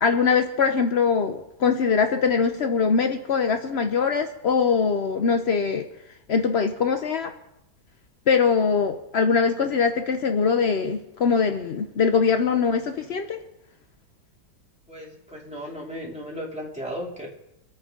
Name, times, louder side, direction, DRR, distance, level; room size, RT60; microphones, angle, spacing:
voice 1, 0.0-5.9 6.3-7.3 8.3-13.4, left 5 dB, 80° left, 6 dB, 0.5 m, -22 dB
voice 2, 14.9-17.3, equal, 5° right, -3 dB, 2.6 m, -35 dB
24.5 x 8.9 x 3.7 m, 0.86 s
omnidirectional pair, 2.1 m